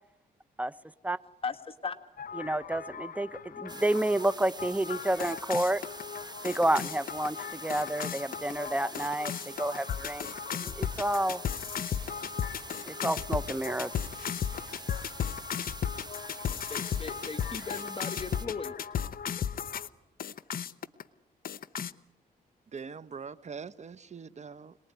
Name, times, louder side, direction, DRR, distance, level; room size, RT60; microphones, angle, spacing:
voice 1, 1.4-2.0 16.7-18.8 19.3-19.5, left 5 dB, 35° left, 2.0 m, -38 dB
sound 1, 2.2-19.9 20.2-21.0 21.4-21.9, left 8 dB, 65° left, 0.9 m, -36 dB
voice 2, 2.4-5.8 6.4-9.3 9.6-10.3 10.6-11.4 12.9-13.9, right 1 dB, 10° right, 0.9 m, -29 dB
sound 2, 3.7-18.5, right 3 dB, 25° right, 1.4 m, -46 dB
voice 3, 22.7-24.8, right 5 dB, 45° right, 1.0 m, -42 dB
26.5 x 19.5 x 9.5 m
cardioid pair, 70°, 16 cm